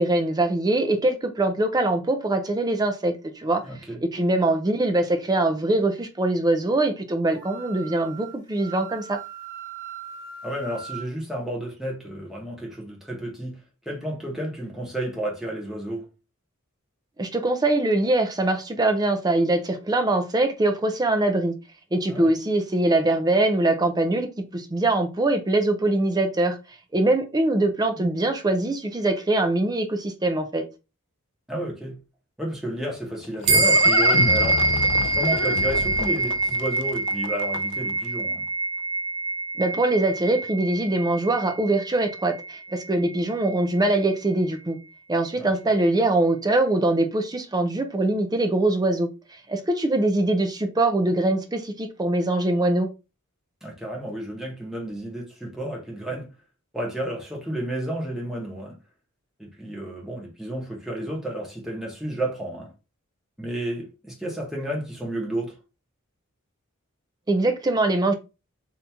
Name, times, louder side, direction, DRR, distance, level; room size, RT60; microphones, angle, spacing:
voice 1, 0.0-3.6 4.0-9.2 17.2-21.5 21.9-26.6 26.9-30.6 39.6-44.8 45.1-49.1 49.5-52.9 67.3-68.1, right 2 dB, 20° right, 0.5 m, -23 dB
voice 2, 3.6-4.0 10.4-13.6 13.8-16.1 22.1-22.3 28.0-28.1 31.5-32.0 32.4-34.6 35.1-38.4 45.4-45.5 53.6-56.3 56.7-58.8 59.4-62.7 63.4-65.5, right 1 dB, ahead, 1.0 m, -31 dB
Wind instrument woodwind instrument, 7.3-11.1, right 7 dB, 60° right, 0.9 m, -40 dB
Livestock farm animals working animals, 32.8-37.9, left 6 dB, 55° left, 0.3 m, -30 dB
sound 1, 33.5-43.2, right 3 dB, 90° right, 0.7 m, -24 dB
2.9 x 2.7 x 3.4 m
head